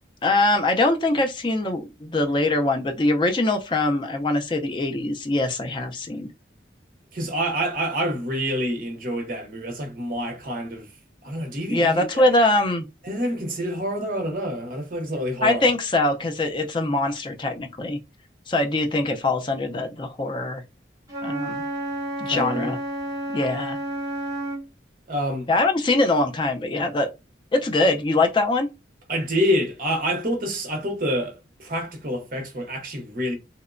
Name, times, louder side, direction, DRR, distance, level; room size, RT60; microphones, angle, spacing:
voice 1, 0.2-6.3 11.7-12.9 15.4-18.0 18.5-20.6 21.2-21.6 22.2-22.8 23.3-23.8 25.5-27.1 27.5-28.7, left 2 dB, 25° left, 0.4 m, -22 dB
voice 2, 7.1-10.9 11.2-12.3 13.0-15.7 22.3-22.7 25.1-25.5 29.1-33.4, equal, 50° right, 0.7 m, -27 dB
Wind instrument woodwind instrument, 21.1-24.7, right 1 dB, 20° right, 0.8 m, -30 dB
2.9 x 2.1 x 2.4 m
head